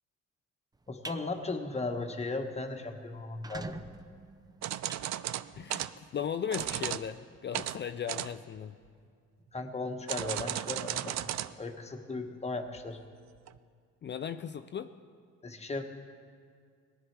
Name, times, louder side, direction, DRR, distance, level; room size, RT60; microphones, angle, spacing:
sound 1, 0.8-1.2 1.7-1.9 2.3-2.4 2.6-2.7 3.2-5.8, right 2 dB, 15° right, 0.5 m, -45 dB
voice 1, 0.9-3.8 9.5-11.2 11.6-13.0 15.4-15.8, left 3 dB, 20° left, 4 dB, 1.3 m, -36 dB
sound 2, 4.6-5.9 6.5-7.1 7.5-7.8 8.1-8.6 10.1-11.5 11.8-11.9 12.8-12.9 13.5-13.6, right 12 dB, 65° right, 0.5 m, -35 dB
voice 2, 5.6-8.8 14.0-14.9, left 8 dB, 40° left, 10 dB, 0.4 m, -37 dB
18.5 x 11.0 x 4.7 m, 2.1 s
cardioid pair, 90°, 30 cm